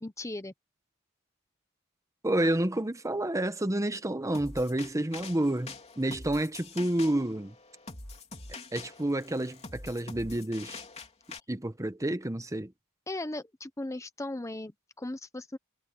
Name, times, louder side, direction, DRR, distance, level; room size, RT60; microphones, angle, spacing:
voice 1, 0.0-0.5 13.1-15.6, left 2 dB, 15° left, 0.8 m, -37 dB
voice 2, 2.2-7.5 8.7-10.8 11.5-12.7, right 1 dB, 15° right, 0.9 m, -29 dB
sound 1, 4.3-11.4, left 3 dB, 30° left, 3.3 m, -45 dB
head